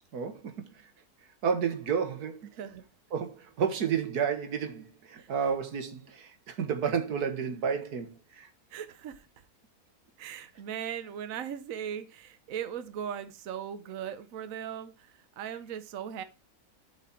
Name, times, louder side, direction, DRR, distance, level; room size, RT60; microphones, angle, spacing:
voice 1, 1.4-2.4 3.1-8.1 8.4-8.5, right 7 dB, 85° right, 1.8 m, -31 dB
voice 2, 2.5-2.8 5.2-5.5 8.7-9.3 10.2-16.2, right 9 dB, 65° right, 1.2 m, -39 dB
12.0 x 5.1 x 4.3 m
omnidirectional pair, 1.6 m